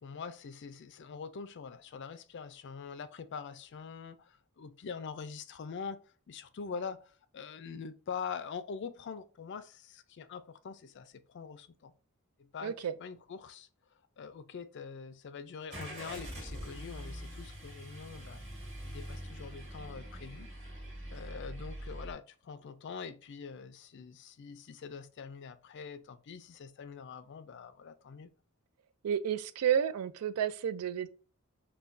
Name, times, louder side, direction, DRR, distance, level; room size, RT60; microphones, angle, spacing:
voice 1, 0.0-11.9 12.4-12.7 13.0-13.7 14.2-18.4 18.8-20.5 21.1-28.3, left 6 dB, 55° left, 0.4 m, -44 dB
voice 2, 12.6-12.9 29.0-31.1, right 8 dB, 85° right, 0.3 m, -31 dB
Car / Engine starting, 15.7-22.1, equal, 30° right, 1.8 m, -44 dB
5.7 x 2.2 x 2.5 m
head